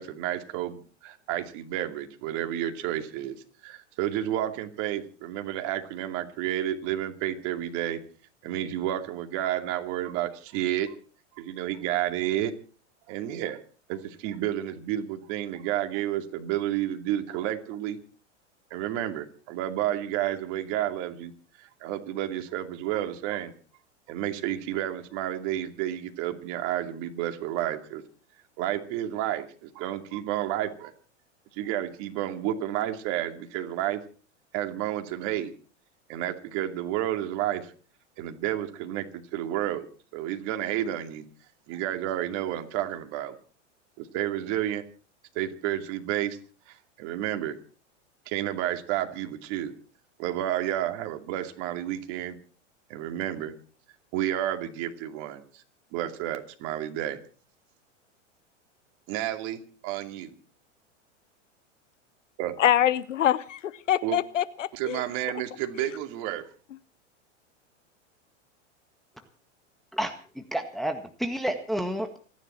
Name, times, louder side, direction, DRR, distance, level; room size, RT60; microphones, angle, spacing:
voice 1, 0.0-3.4 3.6-8.0 8.4-11.0 11.4-12.5 13.1-13.6 13.9-18.0 18.7-21.3 21.6-23.5 24.1-28.0 28.6-30.9 31.5-34.0 34.5-35.5 36.1-37.7 38.2-39.9 40.1-41.2 41.7-43.4 44.0-44.8 45.3-46.4 46.7-47.6 48.3-49.7 50.2-52.4 52.9-53.5 54.1-55.6 55.9-57.2 59.1-60.4 62.4-62.5 64.0-64.2 64.7-66.5, right 12 dB, 50° right, 6 dB, 2.6 m, -31 dB
voice 2, 62.6-63.6 63.9-65.0 65.8-65.9, left 11 dB, 85° left, 18 dB, 1.0 m, -24 dB
voice 3, 69.9-72.2, right 1 dB, ahead, 6 dB, 1.7 m, -30 dB
28.0 x 10.5 x 4.4 m, 0.40 s
hypercardioid pair, 100°, 37 cm